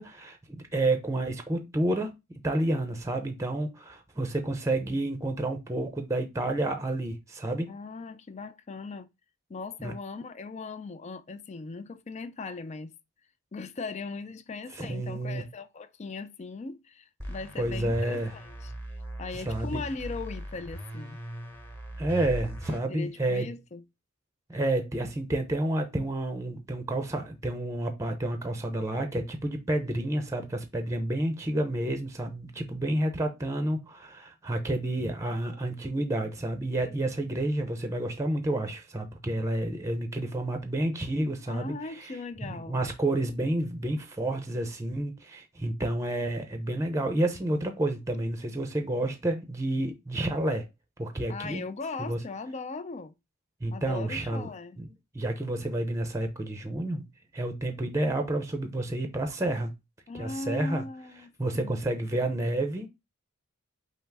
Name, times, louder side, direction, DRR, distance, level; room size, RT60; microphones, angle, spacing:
voice 1, 0.0-7.7 9.8-9.9 14.7-15.5 17.6-18.3 19.3-19.8 22.0-23.5 24.5-42.1 42.4-50.7 51.0-51.6 52.0-52.2 53.6-54.5 54.8-54.9 55.1-57.1 57.3-59.7 60.1-60.8 61.4-62.9, right 1 dB, 15° right, 0.6 m, -30 dB
voice 2, 7.7-9.1 9.5-12.9 13.5-18.7 19.2-21.2 22.9-23.8 41.5-42.8 51.3-53.1 53.7-54.8 60.1-61.8, left 3 dB, 30° left, 0.4 m, -39 dB
sound 1, 17.2-22.8, equal, 10° left, 0.9 m, -39 dB
5.6 x 2.1 x 4.6 m
head